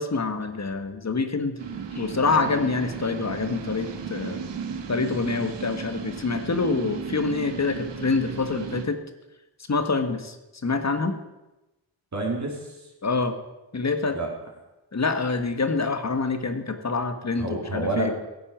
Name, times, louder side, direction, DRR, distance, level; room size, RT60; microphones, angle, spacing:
voice 1, 0.0-1.6 1.9-4.4 4.9-9.0 9.7-10.4 10.6-11.2 13.0-13.3 13.7-14.2 14.9-18.1, left 4 dB, 35° left, 8 dB, 1.6 m, -26 dB
sound 1, 1.6-8.9, right 6 dB, 75° right, 1.6 m, -35 dB
voice 2, 12.1-12.9 14.1-14.3 17.4-18.1, right 2 dB, 40° right, -1 dB, 3.6 m, -28 dB
16.0 x 8.4 x 7.4 m, 1.0 s
wide cardioid pair, 95°, 44 cm